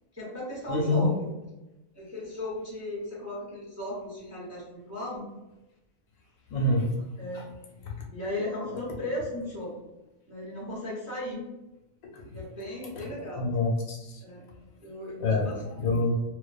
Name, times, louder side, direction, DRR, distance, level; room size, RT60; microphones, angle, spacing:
voice 1, 0.1-1.3 1.9-5.3 7.2-7.4 8.1-9.9 10.3-11.4 12.2-13.6 14.2-14.5 14.8-15.6, left 1 dB, 20° right, -5 dB, 0.4 m, -36 dB
voice 2, 0.7-1.0 6.5-6.9 7.3-7.4 7.8-7.9 12.1-12.2 13.0-13.1 13.4-14.2 15.2-16.2, left 2 dB, 85° left, 1 dB, 1.1 m, -27 dB
2.5 x 2.2 x 2.3 m, 0.99 s
omnidirectional pair, 1.4 m